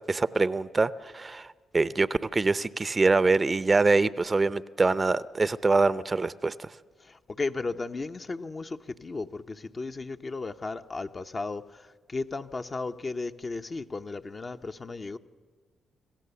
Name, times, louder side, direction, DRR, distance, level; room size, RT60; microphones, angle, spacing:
voice 1, 0.1-6.8, right 3 dB, 35° right, 0.6 m, -24 dB
voice 2, 7.0-15.2, left 3 dB, 40° left, 0.9 m, -35 dB
26.5 x 15.0 x 6.9 m
supercardioid pair, 50°, 0 cm